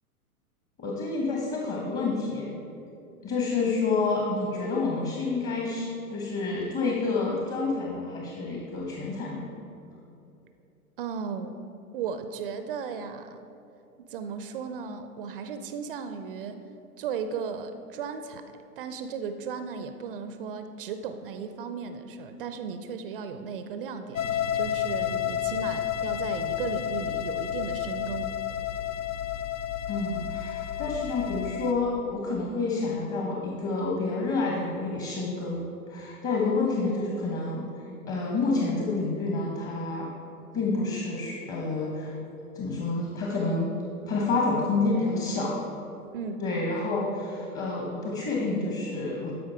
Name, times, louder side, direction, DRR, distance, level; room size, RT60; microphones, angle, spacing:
voice 1, 0.8-2.6 3.2-9.5 29.9-40.1 40.5-42.2 42.5-43.7 44.1-45.6 46.4-49.3, left 3 dB, 30° left, -2 dB, 1.3 m, -29 dB
voice 2, 11.0-11.5 11.9-13.4 14.0-16.6 17.0-18.5 18.8-28.3 46.1-46.4, right 6 dB, 40° right, 9 dB, 0.5 m, -35 dB
sound 1, 24.1-31.7, left 10 dB, 65° left, 0.8 m, -31 dB
13.0 x 5.1 x 4.7 m, 2.8 s
figure-of-eight pair, 110°, 44 cm